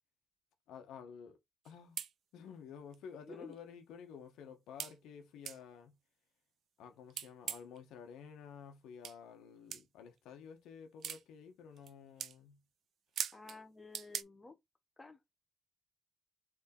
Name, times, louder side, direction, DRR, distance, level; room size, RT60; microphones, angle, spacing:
voice 1, 0.7-1.4 1.6-2.0 2.3-5.9 6.8-12.6, left 7 dB, 85° left, 1.1 m, -52 dB
sound 1, 1.6-1.7 2.0-2.1 2.9-3.0 3.5-3.6 4.8-4.9 5.4-5.6 7.1-7.8 9.0-9.2 9.7-9.8 11.0-11.2 11.8-11.9 12.2-12.3 13.2-13.6 13.9-14.2, right 8 dB, 65° right, 0.5 m, -40 dB
voice 2, 3.2-3.6 13.3-14.6 15.0-15.2, left 3 dB, 20° left, 1.0 m, -52 dB
3.9 x 3.5 x 3.7 m
cardioid pair, 90°, 0 cm